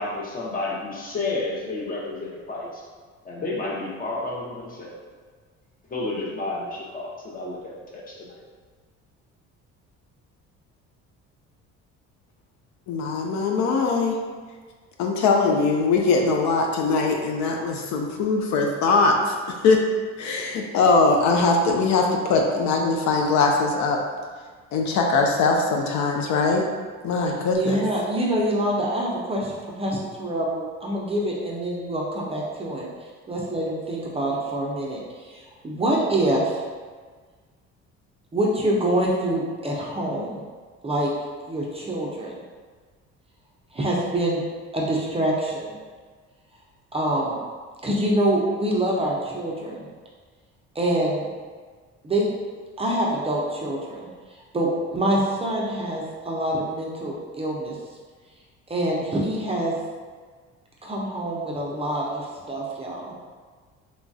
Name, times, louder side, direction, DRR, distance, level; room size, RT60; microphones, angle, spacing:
voice 1, 0.0-2.8 3.2-4.9 5.9-8.4, left 2 dB, 30° left, -3 dB, 0.7 m, -31 dB
voice 2, 12.9-14.2 15.0-19.4 19.6-19.8 20.2-24.0 24.7-26.6 27.0-27.8, left 3 dB, 70° left, 1 dB, 0.5 m, -21 dB
voice 3, 27.5-32.9 33.3-36.6 38.3-40.4 40.8-41.1 41.5-42.3 43.7-44.4 44.7-45.7 46.9-47.4 47.8-49.8 50.8-51.3 52.0-52.3 52.8-54.1 54.5-57.8 58.7-59.7 60.8-63.1, right 1 dB, 20° right, -4 dB, 0.4 m, -25 dB
3.1 x 2.2 x 2.6 m, 1.5 s
cardioid pair, 95°, 30 cm